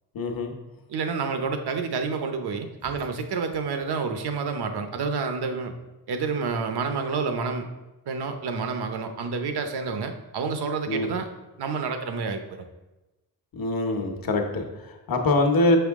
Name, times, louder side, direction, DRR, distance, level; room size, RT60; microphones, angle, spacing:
voice 1, 0.1-0.5 10.9-11.1 13.5-15.8, left 2 dB, 60° left, 3 dB, 1.0 m, -24 dB
voice 2, 0.9-5.7 6.1-7.6 8.1-11.3 11.6-12.6, right 5 dB, 80° right, 6 dB, 0.8 m, -29 dB
6.3 x 5.7 x 3.6 m, 1.0 s
wide cardioid pair, 165°, 39 cm